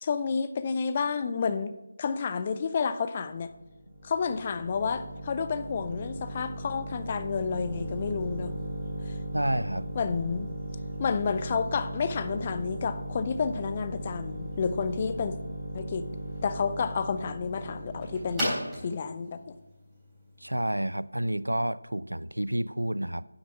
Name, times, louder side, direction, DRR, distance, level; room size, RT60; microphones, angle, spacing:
voice 1, 0.0-1.7 2.0-3.5 4.0-8.5 9.1-9.2 10.0-10.5 11.0-15.4 15.7-16.1 16.4-18.6 18.8-19.5, left 5 dB, 25° left, 0.4 m, -30 dB
sound 1, 3.3-20.9, equal, 5° right, 3.6 m, -37 dB
voice 2, 9.3-9.9 20.4-23.2, right 1 dB, 75° right, 0.4 m, -29 dB
9.4 x 7.9 x 5.3 m
figure-of-eight pair, 160°, 0 cm